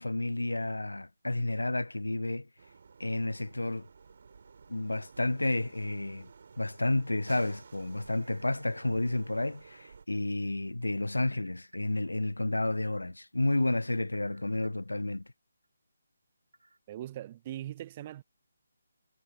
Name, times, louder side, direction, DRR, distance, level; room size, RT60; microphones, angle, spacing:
voice 1, 0.0-2.5 3.0-3.9 4.7-6.3 6.6-15.2, left 2 dB, 80° left, 0.4 m, -31 dB
sound 1, 2.6-10.0, right 5 dB, 50° right, 4.1 m, -54 dB
sound 2, 8.0-9.8 10.3-10.4 11.2-12.3 12.7-12.8 14.1-15.2 15.6-15.7 16.5-16.8, right 2 dB, 75° right, 4.8 m, -60 dB
voice 2, 16.9-18.2, right 13 dB, 25° right, 0.7 m, -40 dB
figure-of-eight pair, 150°, 0 cm